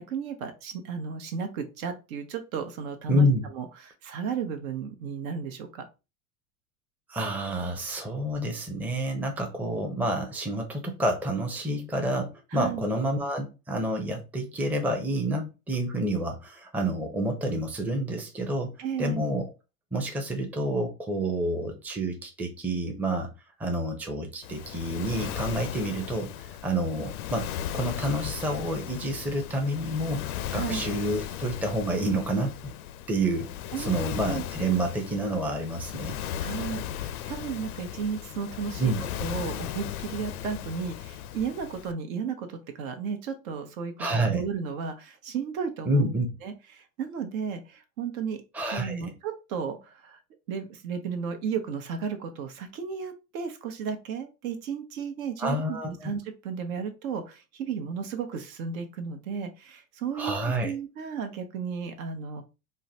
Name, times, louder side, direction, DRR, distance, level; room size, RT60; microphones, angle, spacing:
voice 1, 0.1-3.3 3.5-5.8 12.5-12.8 18.8-19.2 30.5-30.9 33.7-34.4 36.4-38.9 39.2-46.1 46.4-48.4 48.7-50.2 50.5-60.3 60.6-62.4, right 6 dB, 65° right, 7 dB, 0.9 m, -34 dB
voice 2, 3.1-3.5 7.1-18.7 19.0-19.4 19.9-23.3 23.6-27.5 27.7-32.7 33.1-33.5 33.8-36.2 38.8-39.0 44.0-44.4 45.9-46.3 48.5-49.1 55.4-56.1 60.1-60.7, right 1 dB, 5° right, 2 dB, 0.5 m, -28 dB
Waves surf, 24.4-41.9, left 11 dB, 75° left, 0.5 m, -36 dB
3.7 x 2.2 x 2.7 m, 0.29 s
hypercardioid pair, 95°, 44 cm